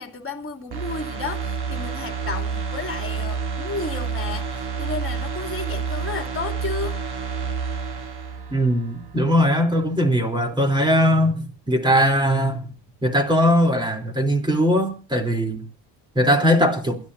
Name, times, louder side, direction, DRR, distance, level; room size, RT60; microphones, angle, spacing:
voice 1, 0.0-7.0, left 4 dB, 30° left, 2.9 m, -32 dB
sound 1, 0.7-9.4 9.7-9.8, right 5 dB, 60° right, 3.2 m, -29 dB
voice 2, 8.5-12.6 13.0-15.6 16.2-17.0, equal, 10° right, 3.5 m, -20 dB
28.0 x 13.5 x 2.7 m
cardioid pair, 105°, 44 cm